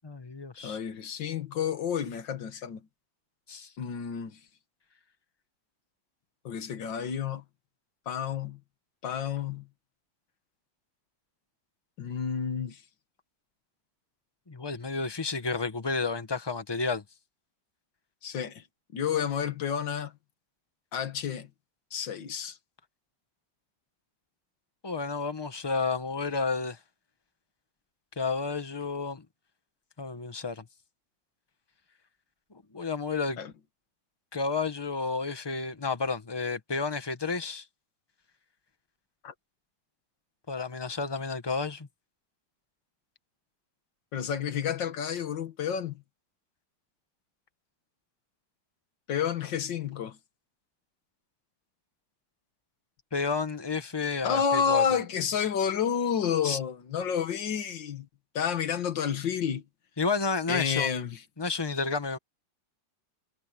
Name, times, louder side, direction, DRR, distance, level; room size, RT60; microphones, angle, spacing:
voice 1, 0.0-0.8 3.5-3.7 14.5-17.0 24.8-26.8 28.2-29.2 30.0-30.6 32.7-33.4 34.3-37.6 40.5-41.9 53.1-54.8 56.4-56.6 60.0-60.9 61.4-62.2, left 4 dB, 15° left, 1.1 m, -31 dB
voice 2, 0.6-2.8 3.8-4.4 6.5-7.4 8.1-8.6 9.0-9.7 12.0-12.8 18.2-18.6 18.9-20.1 20.9-21.5 21.9-22.6 33.4-33.5 39.2-39.3 44.1-46.0 49.1-50.2 54.2-58.1 58.4-59.6 60.5-61.2, left 7 dB, 85° left, 2.0 m, -30 dB
omnidirectional pair, 2.0 m